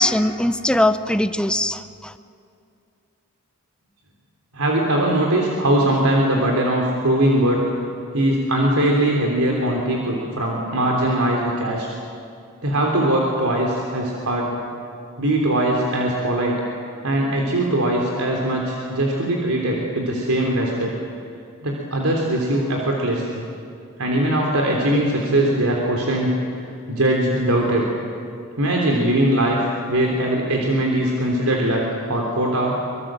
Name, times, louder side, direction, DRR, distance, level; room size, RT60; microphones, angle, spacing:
voice 1, 0.0-2.1, left 1 dB, 5° left, 10 dB, 0.8 m, -20 dB
voice 2, 4.5-7.6 8.1-11.9 12.6-14.5 15.2-16.6 17.0-21.0 21.6-23.4 24.0-26.3 26.9-27.9 28.6-29.6 29.9-32.8, right 1 dB, 85° right, -1 dB, 3.4 m, -21 dB
25.0 x 23.5 x 7.6 m, 2.5 s
head